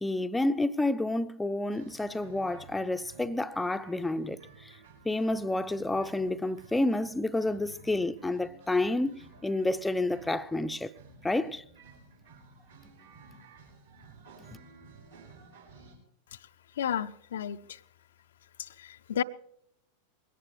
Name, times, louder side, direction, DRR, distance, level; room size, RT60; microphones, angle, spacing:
voice 1, 0.0-4.7 5.0-10.9 11.2-11.6, left 2 dB, 5° left, 0.7 m, -29 dB
sound 1, 1.7-15.9, right 4 dB, 70° right, 7.2 m, -54 dB
voice 2, 16.8-17.8 18.6-19.2, left 9 dB, 60° left, 0.6 m, -33 dB
21.5 x 17.5 x 3.2 m
figure-of-eight pair, 90°, 0 cm